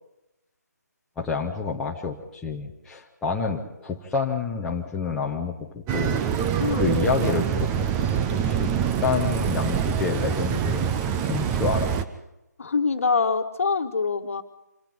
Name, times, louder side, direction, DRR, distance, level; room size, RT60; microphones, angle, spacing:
voice 1, 1.2-6.2 6.7-7.7 8.1-8.7 9.0-11.9, left 5 dB, 5° left, -3 dB, 1.0 m, -28 dB
sound 1, 5.9-12.0, right 8 dB, 10° right, 0.6 m, -25 dB
voice 2, 12.6-14.4, left 4 dB, 50° left, 7 dB, 1.6 m, -24 dB
26.5 x 10.5 x 9.4 m, 0.90 s
figure-of-eight pair, 150°, 10 cm